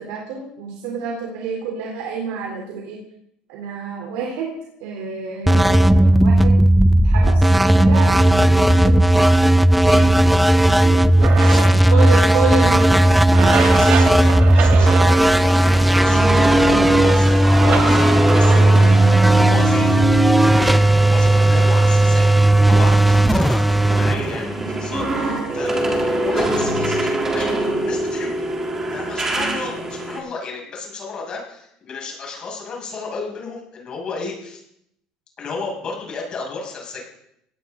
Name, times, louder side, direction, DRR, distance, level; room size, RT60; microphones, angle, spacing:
voice 1, 0.0-3.0 3.5-4.5 4.8-6.5 7.0-9.3 9.8-10.1 10.8-10.9 11.9-13.2 16.6-17.1 25.1-25.5 29.3-29.6, right 5 dB, 85° right, 0 dB, 3.7 m, -29 dB
sound 1, 5.5-25.0, right 1 dB, 5° right, 0.6 m, -15 dB
voice 2, 10.7-12.3 12.6-12.7 13.5-28.3 28.9-34.6 35.4-37.0, left 4 dB, 40° left, -1 dB, 6.4 m, -33 dB
Night Metal Drag, 11.2-18.6, right 7 dB, 55° right, 2.4 m, -27 dB
sound 2, 14.6-23.0 23.3-30.2, right 2 dB, 20° right, 3.4 m, -24 dB
18.0 x 16.5 x 3.9 m, 0.76 s
cardioid pair, 120°, 2 cm